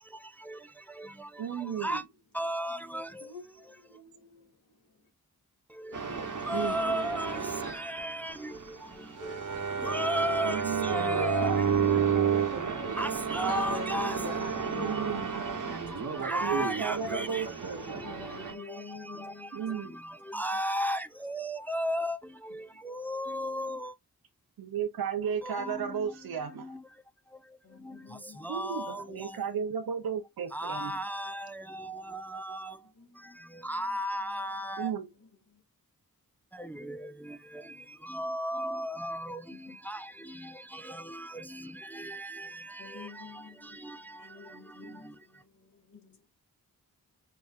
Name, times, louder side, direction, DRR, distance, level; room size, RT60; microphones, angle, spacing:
voice 1, 1.4-2.0 6.5-6.8 10.4-13.1 14.7-15.4 16.2-17.9 19.5-20.0 24.6-26.7 28.5-31.0 34.8-35.1, right 7 dB, 75° right, 0.7 m, -35 dB
voice 2, 2.4-3.0 6.5-7.3 7.8-8.3 9.8-10.6 10.9-11.5 13.0-14.1 16.3-17.4 20.3-22.2 22.9-23.8 25.6-25.7 28.5-29.0 30.5-31.4 32.3-32.6 33.7-34.9 38.2-39.4 39.9-40.0, equal, 5° left, 0.4 m, -32 dB
voice 3, 3.2-4.8 10.9-11.5 13.5-15.2 15.5-15.8 17.9-20.5 27.6-28.5 29.2-29.4 32.8-34.0 34.3-34.4 34.8-35.6 39.5-40.7 42.5-46.3, left 4 dB, 65° left, 2.0 m, -45 dB
sound 1, 5.9-18.5, right 6 dB, 55° right, 1.1 m, -31 dB
5.5 x 3.0 x 2.4 m
cardioid pair, 50°, 37 cm